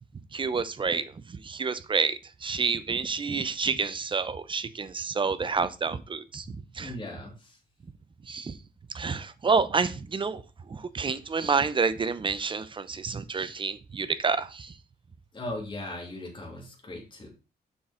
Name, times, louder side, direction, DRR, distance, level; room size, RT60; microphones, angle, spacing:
voice 1, 0.3-6.5 6.8-6.9 8.3-8.5 8.9-10.4 10.7-14.7, right 5 dB, 30° right, 0.6 m, -29 dB
voice 2, 6.8-7.6 15.3-17.3, left 1 dB, 30° left, 2.9 m, -38 dB
6.9 x 6.0 x 3.7 m
cardioid pair, 125°, 17 cm